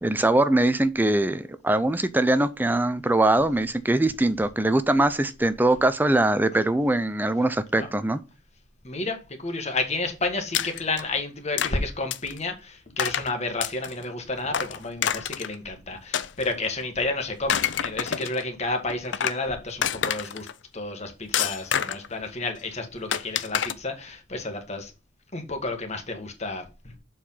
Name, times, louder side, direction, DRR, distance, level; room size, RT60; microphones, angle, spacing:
voice 1, 0.0-8.2, right 1 dB, 10° right, 0.4 m, -22 dB
voice 2, 8.8-20.5 20.7-24.9 25.3-26.9, left 2 dB, 35° left, 1.5 m, -31 dB
sound 1, 10.5-11.0 11.6-11.7 12.1-12.4 13.0-13.3 13.6-14.0 14.5-15.5 16.1-16.8 17.3-18.4 18.9-19.4 19.8-20.5 21.3-22.1 23.1-23.7, left 9 dB, 65° left, 0.5 m, -27 dB
6.9 x 4.6 x 5.5 m
head